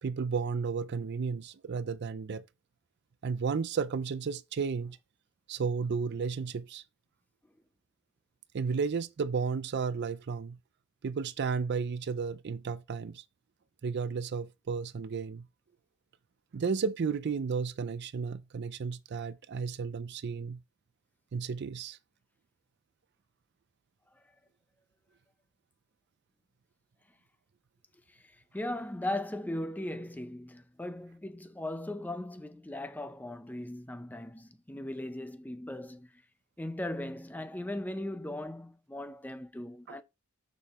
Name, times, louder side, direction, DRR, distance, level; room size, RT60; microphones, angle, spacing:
voice 1, 0.0-2.4 3.2-5.0 5.5-6.8 8.5-10.6 11.0-13.2 13.8-15.5 16.5-20.6 21.3-22.0 39.9-40.0, right 5 dB, 50° right, 0.4 m, -33 dB
voice 2, 28.1-36.2 36.6-40.0, left 1 dB, 10° left, 0.5 m, -38 dB
6.7 x 5.1 x 3.0 m
head